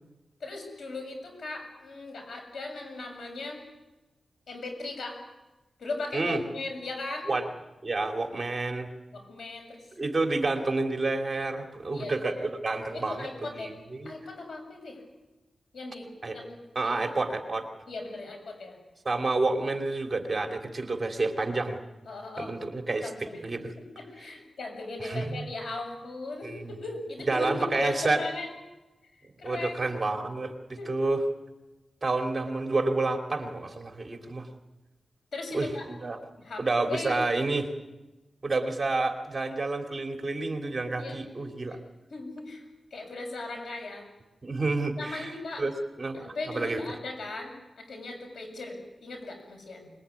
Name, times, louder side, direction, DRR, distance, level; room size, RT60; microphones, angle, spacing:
voice 1, 0.4-3.6 4.5-5.2 5.8-7.3 9.1-9.8 11.9-12.3 12.9-13.7 14.0-15.0 15.7-16.6 16.8-17.1 17.9-18.8 22.1-22.6 23.0-23.4 23.7-28.5 29.4-30.2 30.8-30.9 35.3-35.9 36.4-37.2 41.0-41.8 42.1-42.6 42.9-44.1 45.0-45.6 46.1-49.9, left 2 dB, 90° left, 3 dB, 7.3 m, -38 dB
voice 2, 7.8-8.9 10.0-14.1 16.2-16.4 16.7-17.7 19.0-21.8 22.4-23.7 25.0-25.5 26.4-26.7 27.3-28.2 29.4-30.5 30.9-31.2 32.0-34.5 35.5-36.2 36.6-37.7 38.4-41.8 44.4-45.7 46.0-46.8, right 3 dB, 30° right, 4 dB, 2.9 m, -29 dB
25.5 x 21.0 x 9.7 m, 1.1 s
wide cardioid pair, 130°, 0 cm